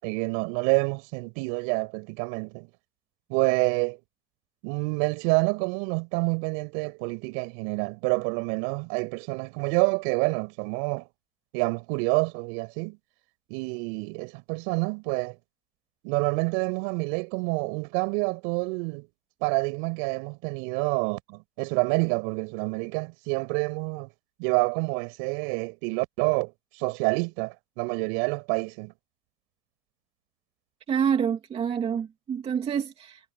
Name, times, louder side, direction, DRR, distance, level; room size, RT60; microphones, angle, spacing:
voice 1, 0.0-2.7 3.3-4.0 4.6-11.1 11.5-13.0 13.5-15.4 16.0-19.1 19.4-24.1 24.4-26.5 26.8-28.9, right 34 dB, 45° right, 7.3 m, -28 dB
voice 2, 30.9-33.3, right 7 dB, 20° right, 2.7 m, -27 dB
supercardioid pair, 150°, 30 cm